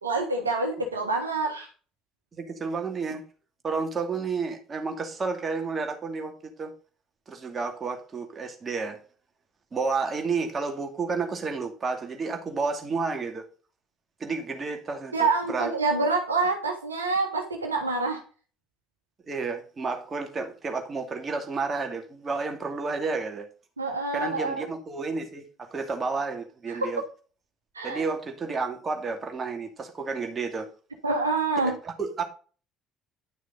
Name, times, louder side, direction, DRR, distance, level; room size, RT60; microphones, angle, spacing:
voice 1, 0.0-1.7 15.1-18.2 23.8-24.7 26.7-26.9 27.7-28.1 31.0-31.7, right 3 dB, 85° right, 1.5 m, -27 dB
voice 2, 2.3-3.2 3.6-6.3 6.6-6.7 7.3-9.0 9.7-13.4 14.2-15.7 19.2-23.5 24.1-27.0 27.8-30.7 31.6-32.2, right 4 dB, 30° right, 2.5 m, -31 dB
10.5 x 6.3 x 4.0 m
figure-of-eight pair, 55°, 0 cm